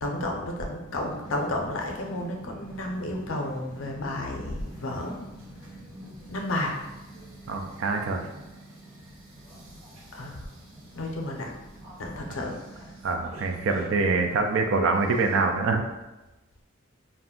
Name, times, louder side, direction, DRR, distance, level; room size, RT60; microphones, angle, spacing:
voice 1, 0.0-5.2 5.6-5.7 6.3-6.8 10.1-10.5 10.9-11.6 12.0-13.0, left 1 dB, 70° left, 1 dB, 0.5 m, -32 dB
sound 1, 0.9-15.6, right 1 dB, 85° right, 0.7 m, -46 dB
voice 2, 7.5-8.3 13.0-15.8, right 3 dB, 70° right, 4 dB, 0.4 m, -25 dB
2.5 x 2.2 x 3.6 m, 1.0 s
head